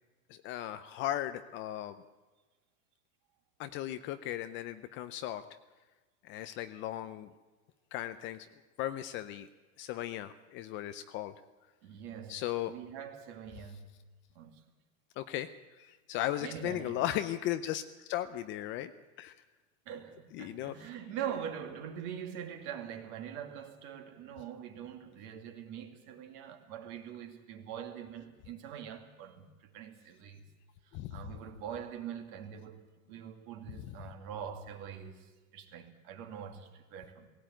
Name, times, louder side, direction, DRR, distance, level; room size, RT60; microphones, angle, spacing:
voice 1, 0.3-2.0 3.6-5.5 6.2-7.3 7.9-8.5 8.8-9.5 9.8-11.3 12.3-12.8 15.2-18.9 19.2-19.3 20.3-20.7 30.9-31.3 33.7-34.0, left 13 dB, 30° left, 0.6 m, -37 dB
voice 2, 11.8-13.9 14.3-14.6 16.4-17.1 19.9-30.4 31.1-37.3, right 8 dB, 45° right, 2.6 m, -43 dB
18.5 x 17.0 x 9.0 m
supercardioid pair, 155°, 40 cm